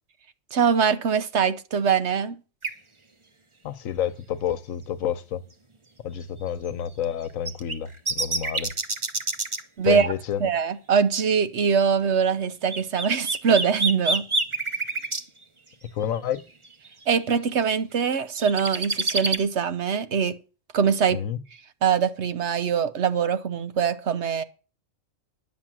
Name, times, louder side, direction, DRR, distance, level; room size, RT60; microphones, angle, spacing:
voice 1, 0.5-2.4 9.8-10.1 10.4-14.3 17.1-20.4 20.7-21.2 21.8-24.4, right 6 dB, 60° right, 1.1 m, -23 dB
sound 1, 2.6-2.7 6.7-6.8 7.4-9.6 12.7-15.2 16.3-16.4 16.8-16.9 18.1-19.4, right 3 dB, 25° right, 0.9 m, -26 dB
voice 2, 3.6-5.4 6.0-8.7 9.8-10.4 15.9-16.4 21.1-21.4, left 9 dB, 90° left, 1.2 m, -29 dB
10.5 x 7.3 x 7.4 m
omnidirectional pair, 1.4 m